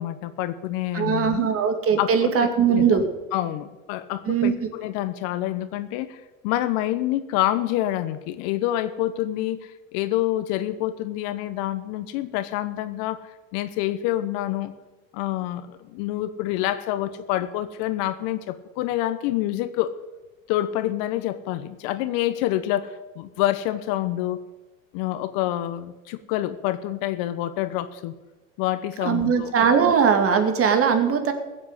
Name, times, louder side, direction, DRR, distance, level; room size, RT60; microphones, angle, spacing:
voice 1, 0.0-1.5 2.0-3.0 3.3-13.2 13.5-14.7 15.1-19.9 20.5-24.4 24.9-28.1 28.6-29.5, left 14 dB, 55° left, 13 dB, 1.1 m, -27 dB
voice 2, 0.9-3.0 4.3-4.5 29.0-31.3, right 6 dB, 35° right, 6 dB, 2.4 m, -20 dB
15.5 x 7.6 x 8.1 m, 1.2 s
hypercardioid pair, 100°, 41 cm